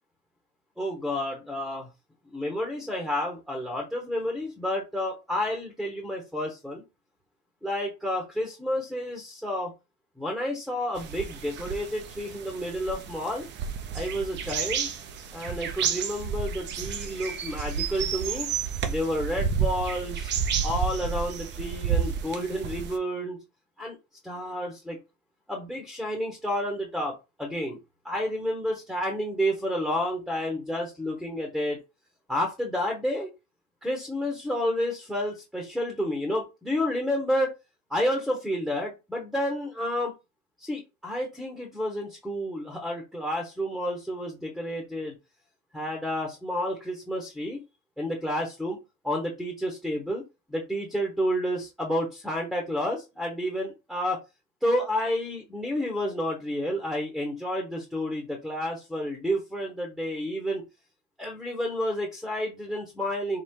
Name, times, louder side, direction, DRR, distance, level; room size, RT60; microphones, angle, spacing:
voice 1, 0.8-1.9 2.3-6.8 7.6-9.7 10.2-13.5 13.9-14.9 15.3-18.5 18.9-20.3 20.6-23.4 23.8-24.0 24.2-25.0 25.5-27.1 27.4-27.8 28.0-31.8 32.3-33.3 33.8-37.5 37.9-40.1 40.6-45.1 45.7-47.6 48.0-48.8 49.0-50.2 50.5-54.2 54.6-60.6 61.2-63.4, equal, ahead, 0.9 m, -30 dB
sound 1, 11.0-23.0, right 7 dB, 25° right, 0.5 m, -31 dB
3.7 x 2.3 x 4.4 m
supercardioid pair, 130°, 42 cm